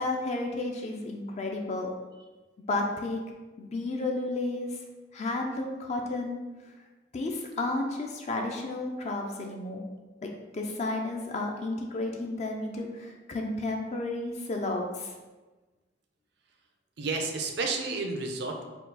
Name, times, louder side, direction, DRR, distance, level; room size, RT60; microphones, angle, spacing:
voice 1, 0.0-1.9 2.7-3.2 3.6-4.8 5.1-6.4 7.1-9.8 10.2-15.1, left 2 dB, 35° left, 2 dB, 0.4 m, -32 dB
voice 2, 17.0-18.6, right 3 dB, 60° right, 3 dB, 0.5 m, -31 dB
4.4 x 2.3 x 3.9 m, 1.2 s
head